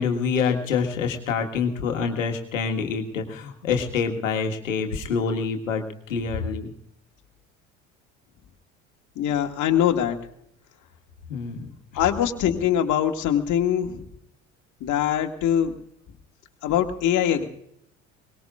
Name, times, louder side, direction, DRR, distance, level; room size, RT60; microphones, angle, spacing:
voice 1, 0.0-6.7 11.3-11.7, left 5 dB, 85° left, 4 dB, 1.8 m, -26 dB
voice 2, 9.2-10.2 12.0-14.1 14.8-15.7 16.6-17.5, left 10 dB, 50° left, 3 dB, 2.0 m, -23 dB
23.0 x 20.0 x 2.5 m, 0.69 s
hypercardioid pair, 65°, 38 cm